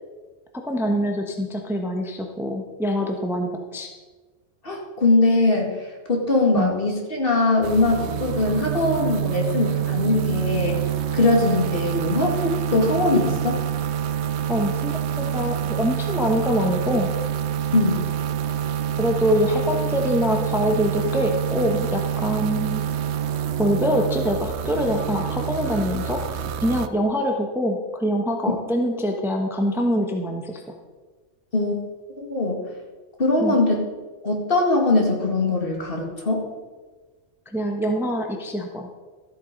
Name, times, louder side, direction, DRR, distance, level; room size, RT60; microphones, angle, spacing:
voice 1, 0.5-3.9 6.5-6.7 14.5-17.1 19.0-22.8 23.6-30.6 33.4-33.6 37.5-38.9, equal, ahead, 2 dB, 1.0 m, -24 dB
voice 2, 4.6-5.7 6.1-10.8 11.1-13.6 17.7-18.0 31.5-31.8 32.2-32.6 33.2-33.8 34.2-36.5, left 2 dB, 50° left, 0 dB, 2.3 m, -21 dB
sound 1, 7.6-26.9, right 10 dB, 65° right, 0.9 m, -27 dB
13.5 x 8.3 x 5.3 m, 1.3 s
omnidirectional pair, 1.3 m